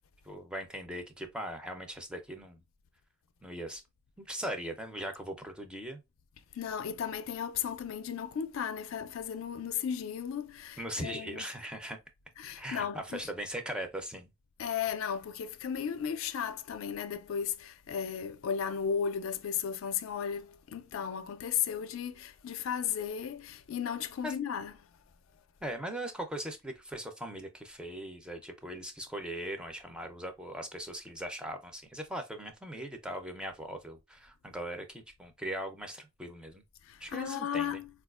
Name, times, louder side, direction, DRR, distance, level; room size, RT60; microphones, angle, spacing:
voice 1, 0.2-2.6 3.4-3.8 4.2-6.0 10.8-12.0 12.6-14.3 24.2-24.3 25.6-36.6 37.0-37.8, right 1 dB, 5° right, 0.5 m, -40 dB
voice 2, 6.5-11.4 12.4-13.3 14.6-24.7 36.8-37.9, left 8 dB, 75° left, 0.4 m, -35 dB
4.2 x 2.3 x 2.3 m
head